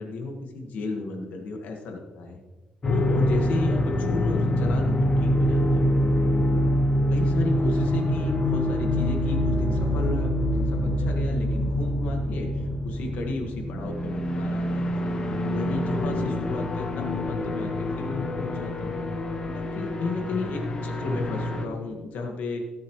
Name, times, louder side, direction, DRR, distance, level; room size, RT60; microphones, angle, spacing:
voice 1, 0.0-2.4 2.9-5.9 6.5-6.7 7.1-15.2 15.5-19.1 19.4-22.6, left 3 dB, 70° left, 2 dB, 1.6 m, -33 dB
sound 1, 2.8-21.7, left 1 dB, 30° left, 1.0 m, -25 dB
17.5 x 7.3 x 3.1 m, 1.2 s
cardioid pair, 150°, 3 cm